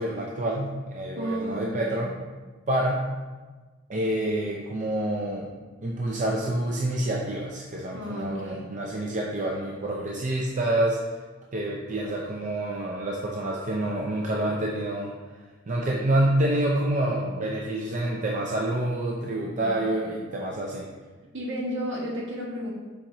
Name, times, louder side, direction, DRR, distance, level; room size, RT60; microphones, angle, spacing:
voice 1, 0.0-2.1 2.7-3.0 3.9-5.5 5.8-11.0 11.5-15.1 15.7-20.9, right 1 dB, 40° right, -2 dB, 0.6 m, -27 dB
voice 2, 1.1-2.1 7.9-8.7 19.5-20.1 21.3-22.7, equal, 65° right, -3 dB, 1.6 m, -33 dB
7.2 x 5.1 x 3.0 m, 1.3 s
head